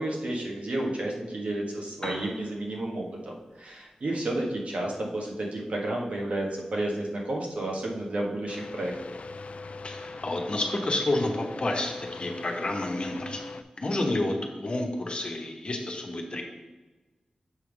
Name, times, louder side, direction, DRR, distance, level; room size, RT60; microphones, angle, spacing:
voice 1, 0.0-3.3 3.6-8.9, right 1 dB, 70° right, -2 dB, 1.5 m, -31 dB
Piano, 1.8-9.8, left 1 dB, 30° left, 1.2 m, -48 dB
sound 1, 8.5-13.6, left 3 dB, 65° left, 0.4 m, -41 dB
voice 2, 9.8-13.4 13.8-14.3 14.6-16.4, left 2 dB, 50° left, 1 dB, 1.1 m, -29 dB
7.3 x 3.5 x 6.0 m, 1.2 s
wide cardioid pair, 95°, 2 cm